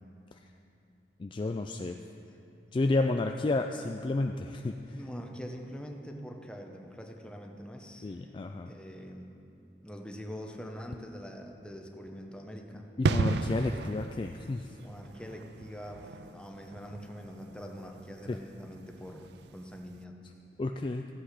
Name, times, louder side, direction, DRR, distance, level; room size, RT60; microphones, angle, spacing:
voice 1, 1.2-2.0 2.7-5.0 8.0-8.7 13.0-14.7 18.3-18.4 20.6-21.1, left 2 dB, 30° left, 4 dB, 0.3 m, -31 dB
voice 2, 4.9-8.2 8.7-9.3 9.8-12.9 14.8-20.2, equal, 5° left, 2 dB, 0.8 m, -44 dB
sound 1, 13.0-19.5 19.8-20.0, right 4 dB, 70° right, 0.4 m, -34 dB
14.5 x 7.9 x 4.9 m, 2.7 s
head